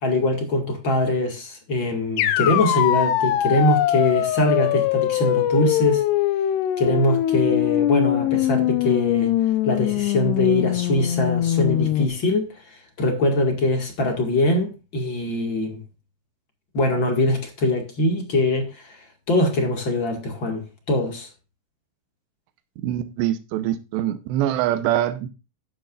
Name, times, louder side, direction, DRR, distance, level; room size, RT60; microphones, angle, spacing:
voice 1, 0.0-6.0 6.8-9.4 9.6-15.8 16.7-19.0 19.3-21.3, left 1 dB, 40° left, 1.9 m, -23 dB
sound 1, 2.2-12.1, left 12 dB, 75° left, 2.9 m, -22 dB
voice 2, 22.8-25.3, right 12 dB, 80° right, 3.1 m, -24 dB
13.0 x 9.4 x 2.5 m
omnidirectional pair, 5.0 m